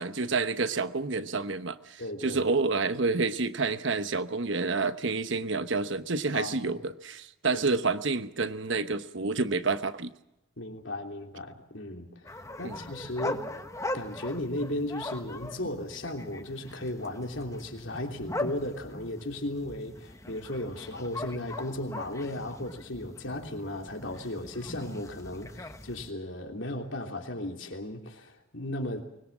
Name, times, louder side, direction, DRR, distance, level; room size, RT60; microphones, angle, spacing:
voice 1, 0.0-10.1 12.6-12.8, right 3 dB, 65° right, 11 dB, 1.1 m, -29 dB
voice 2, 2.0-2.4 6.3-6.6 7.5-7.6 10.6-12.1 12.6-13.5 13.9-29.1, left 1 dB, 65° left, 3 dB, 3.2 m, -35 dB
sound 1, 12.3-26.1, left 1 dB, 15° left, 1.1 m, -40 dB
24.0 x 21.5 x 7.3 m, 0.85 s
head